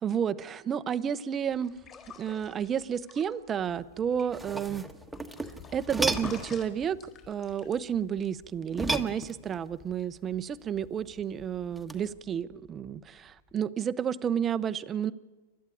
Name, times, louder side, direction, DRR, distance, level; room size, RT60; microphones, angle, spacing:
voice 1, 0.0-1.7 2.2-4.9 5.7-7.0 7.3-15.1, right 8 dB, 25° right, 14 dB, 0.8 m, -31 dB
sound 1, 1.5-13.5, left 6 dB, 30° left, 3.9 m, -53 dB
sound 2, 4.1-6.6 8.7-9.7 11.8-12.1, right 2 dB, ahead, 1.4 m, -33 dB
29.5 x 12.5 x 9.9 m, 1.3 s
hypercardioid pair, 130°, 0 cm